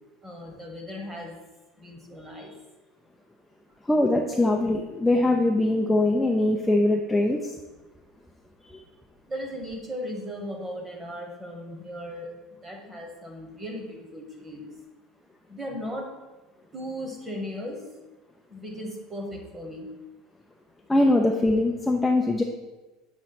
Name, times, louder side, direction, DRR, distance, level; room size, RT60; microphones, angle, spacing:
voice 1, 0.2-1.4 1.8-2.5 8.6-8.8 9.3-12.3 12.6-14.7 15.5-16.1 16.7-17.8 18.5-19.9, equal, 15° right, 1 dB, 1.2 m, -37 dB
voice 2, 3.9-7.4 20.9-22.4, left 2 dB, 5° left, 1 dB, 0.4 m, -22 dB
7.4 x 3.0 x 5.9 m, 1.2 s
cardioid pair, 160°, 0 cm